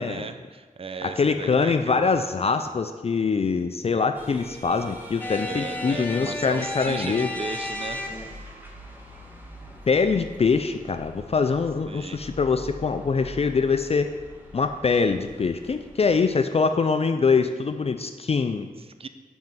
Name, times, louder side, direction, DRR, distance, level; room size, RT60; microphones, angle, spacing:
voice 1, 0.0-2.1 5.4-8.1 11.9-12.2 18.8-19.1, right 4 dB, 40° right, 9 dB, 0.5 m, -36 dB
voice 2, 1.0-7.3 9.9-14.1 14.5-18.7, left 5 dB, 40° left, 7 dB, 0.4 m, -23 dB
sound 1, 4.1-16.3, equal, 10° right, 1.4 m, -44 dB
sound 2, 5.2-8.5, left 2 dB, 10° left, 1.0 m, -33 dB
5.4 x 5.2 x 5.9 m, 1.4 s
cardioid pair, 40°, 15 cm